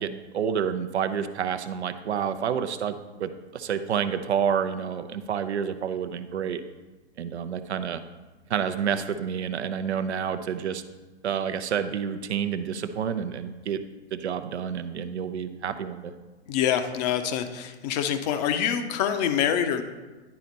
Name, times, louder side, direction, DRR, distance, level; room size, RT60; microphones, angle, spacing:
voice 1, 0.0-6.6 7.2-8.0 8.5-10.8 11.2-13.8 14.1-16.1, right 8 dB, 70° right, 10 dB, 0.6 m, -29 dB
voice 2, 16.5-19.8, left 9 dB, 35° left, 8 dB, 0.7 m, -25 dB
10.5 x 4.1 x 4.0 m, 1.2 s
hypercardioid pair, 115°, 34 cm